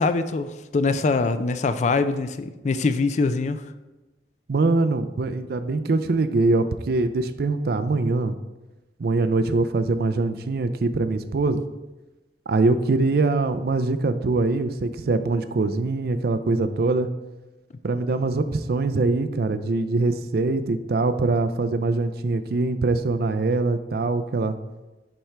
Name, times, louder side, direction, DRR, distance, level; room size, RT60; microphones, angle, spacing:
voice 1, 0.0-3.6, left 3 dB, 40° left, 11 dB, 0.4 m, -23 dB
voice 2, 4.5-8.3 9.0-11.6 12.5-17.1 17.8-24.6, right 3 dB, 60° right, 11 dB, 0.4 m, -23 dB
10.0 x 4.4 x 3.4 m, 1.1 s
head